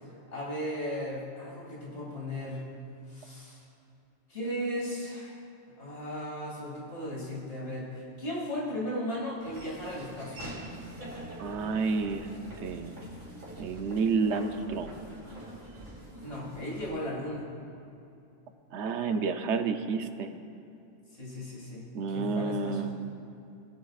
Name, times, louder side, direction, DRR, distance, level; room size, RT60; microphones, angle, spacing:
voice 1, 0.3-2.7 3.1-3.6 4.3-5.4 5.8-10.5 16.2-17.5 21.1-21.9 22.1-22.9, equal, 65° left, -6 dB, 2.8 m, -36 dB
Laughter / Walk footsteps, 9.4-16.9, right 1 dB, 85° right, 3.0 m, -44 dB
voice 2, 11.4-12.3 12.6-13.0 13.6-15.0 18.7-20.3 21.9-22.9, right 4 dB, 70° right, 7 dB, 0.9 m, -30 dB
19.5 x 8.0 x 2.4 m, 2.7 s
omnidirectional pair, 1.3 m